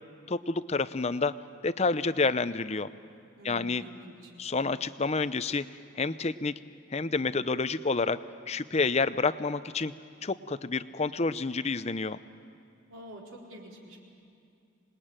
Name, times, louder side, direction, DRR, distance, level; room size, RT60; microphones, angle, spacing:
voice 1, 0.3-1.3 1.6-2.9 3.4-3.8 4.4-5.6 5.9-6.5 6.9-8.2 8.5-9.9 10.2-12.2, left 4 dB, 30° left, 13 dB, 0.6 m, -29 dB
voice 2, 3.4-4.3 12.9-14.0, equal, 85° right, -1 dB, 4.5 m, -47 dB
26.5 x 20.5 x 8.9 m, 2.5 s
head